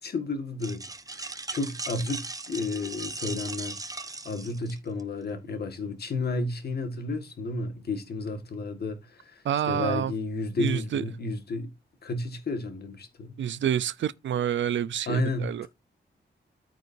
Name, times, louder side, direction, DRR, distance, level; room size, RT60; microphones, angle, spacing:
voice 1, 0.0-11.7 12.0-13.4 15.1-15.7, left 2 dB, 55° left, 1.8 m, -32 dB
sound 1, 0.6-5.0, right 3 dB, 20° right, 0.8 m, -38 dB
voice 2, 9.4-10.1 10.6-11.0 13.4-15.7, right 9 dB, 85° right, 0.6 m, -28 dB
14.0 x 4.8 x 2.7 m
wide cardioid pair, 145°, 19 cm